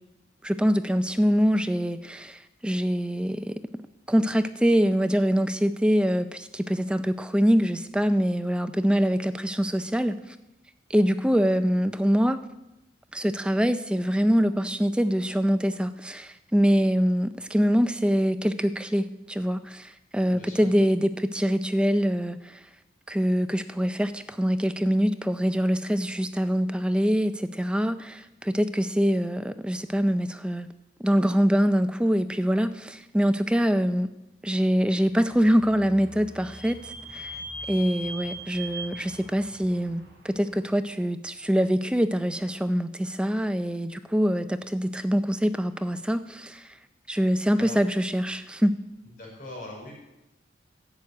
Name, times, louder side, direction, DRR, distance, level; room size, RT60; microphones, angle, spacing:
voice 1, 0.4-3.5 4.1-10.2 10.9-12.4 13.1-22.6 23.1-30.7 31.0-34.1 34.4-37.3 37.7-46.6 47.1-48.8, equal, 5° right, 10 dB, 0.4 m, -24 dB
voice 2, 20.3-20.8 47.6-47.8 49.2-49.9, left 1 dB, 45° left, -3 dB, 5.0 m, -41 dB
Vehicle / Squeak, 35.0-40.6, right 1 dB, 50° right, 4.6 m, -41 dB
11.0 x 6.5 x 8.3 m, 0.94 s
head